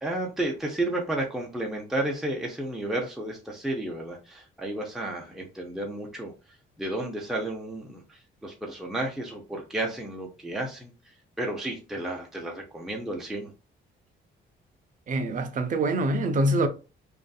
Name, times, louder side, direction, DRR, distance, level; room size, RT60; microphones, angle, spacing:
voice 1, 0.0-6.3 6.8-10.9 11.4-13.5, right 1 dB, ahead, 0.6 m, -32 dB
voice 2, 15.1-16.7, right 1 dB, 40° right, 0.5 m, -25 dB
2.5 x 2.4 x 2.3 m
cardioid pair, 90°, 20 cm